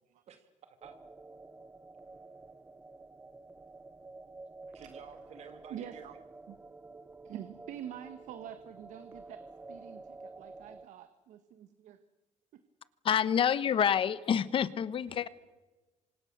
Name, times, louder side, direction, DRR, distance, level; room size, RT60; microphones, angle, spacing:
voice 1, 0.3-1.0 4.7-6.2 15.1-15.3, right 7 dB, 60° right, 8 dB, 2.3 m, -52 dB
sound 1, 0.8-10.9, right 3 dB, 15° right, 0.8 m, -50 dB
voice 2, 5.7-6.1 6.5-6.6 7.2-12.0 12.5-12.6, right 10 dB, 80° right, 10 dB, 1.4 m, -46 dB
voice 3, 13.0-15.3, left 8 dB, 45° left, 16 dB, 1.0 m, -27 dB
28.0 x 25.5 x 6.7 m, 1.2 s
cardioid pair, 145°, 12 cm